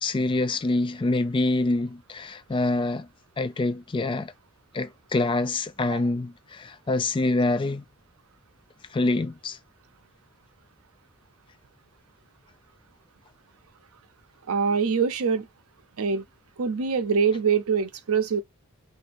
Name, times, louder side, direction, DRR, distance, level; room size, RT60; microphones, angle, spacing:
voice 1, 0.0-3.1 3.4-4.3 4.7-7.8 8.9-9.6, left 2 dB, 25° left, 0.3 m, -26 dB
voice 2, 14.5-15.5 16.0-16.2 16.6-18.4, right 6 dB, 75° right, 0.5 m, -24 dB
2.6 x 2.6 x 4.0 m
head